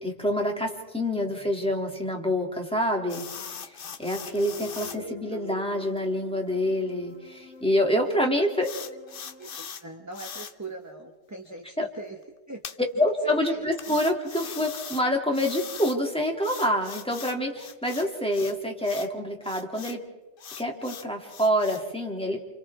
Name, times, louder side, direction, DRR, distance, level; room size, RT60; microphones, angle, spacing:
voice 1, 0.0-8.7 11.8-11.9 13.0-20.0 20.6-22.4, equal, 5° left, 0 dB, 2.8 m, -27 dB
sound 1, 3.1-5.0 5.4-5.5 5.8-6.0 6.5-6.6 8.6-9.8 10.1-10.5 12.6-12.8 13.8-15.0 15.3-16.0 16.4-18.5 18.8-19.1 19.4-20.0 20.4-21.8, left 7 dB, 50° left, 1.0 m, -40 dB
sound 2, 4.2-9.6, left 9 dB, 75° left, 2.9 m, -47 dB
voice 2, 4.9-5.6 8.4-8.5 9.4-12.2 12.5-12.6 13.2-14.0, right 2 dB, 15° right, 2 dB, 1.4 m, -42 dB
29.5 x 28.5 x 3.7 m, 1.1 s
omnidirectional pair, 1.3 m